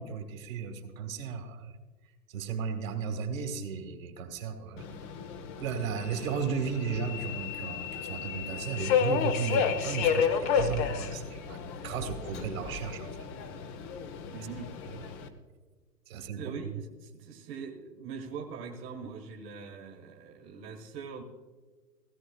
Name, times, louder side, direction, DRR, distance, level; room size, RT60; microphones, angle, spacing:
voice 1, 0.0-1.7 2.3-4.9 5.6-13.2 16.1-16.7, right 6 dB, 55° right, 4 dB, 1.7 m, -35 dB
Subway metro underground, 4.8-15.3, left 7 dB, 25° left, 0.7 m, -32 dB
voice 2, 14.3-14.7 16.1-21.2, right 5 dB, 25° right, 1 dB, 1.4 m, -42 dB
16.5 x 15.5 x 2.2 m, 1.4 s
figure-of-eight pair, 115°, 48 cm